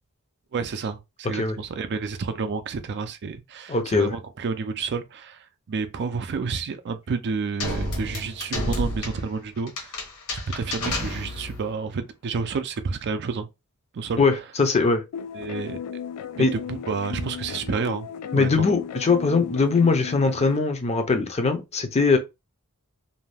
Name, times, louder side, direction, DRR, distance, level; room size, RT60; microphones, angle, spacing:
voice 1, 0.5-5.4 5.7-9.9 10.3-13.5 13.9-14.2 15.3-15.8 16.4-18.1 18.3-18.7, right 5 dB, 50° right, 0.4 m, -30 dB
voice 2, 3.7-4.1 14.2-15.0 16.4-16.5 18.3-22.2, left 4 dB, 30° left, 0.5 m, -21 dB
sound 1, 7.6-11.7, left 1 dB, 70° left, 1.0 m, -30 dB
sound 2, 15.1-20.6, left 7 dB, 90° left, 0.4 m, -36 dB
2.6 x 2.2 x 3.3 m
head